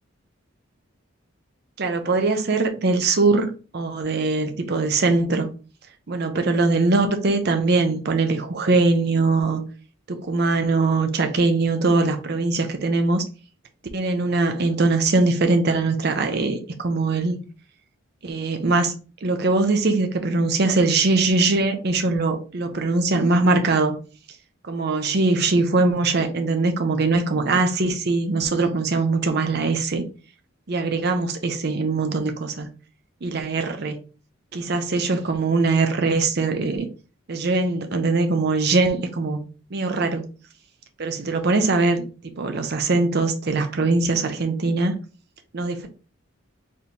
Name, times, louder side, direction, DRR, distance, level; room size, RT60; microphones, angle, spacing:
voice 1, 1.8-5.5 6.1-9.6 10.1-13.2 13.9-17.4 18.2-18.9 19.2-24.0 24.7-30.0 30.7-32.7 33.2-34.0 34.5-36.9 37.3-39.4 39.7-40.2 41.0-42.0 42.4-44.9 45.5-45.9, right 3 dB, 50° right, 0.6 m, -21 dB
4.3 x 3.2 x 2.7 m
head